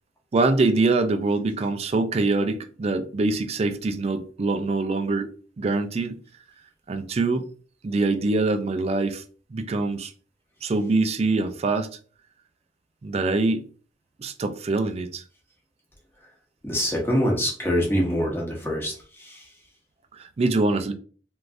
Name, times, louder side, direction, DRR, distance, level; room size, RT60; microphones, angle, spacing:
voice 1, 0.3-5.3 5.6-6.2 6.9-7.5 7.8-9.2 9.5-10.1 10.6-11.9 13.0-13.6 14.2-15.2 20.1-20.9, right 3 dB, 35° right, 0.3 m, -24 dB
voice 2, 16.6-19.4, equal, 15° left, 0.9 m, -25 dB
3.2 x 2.6 x 2.5 m
head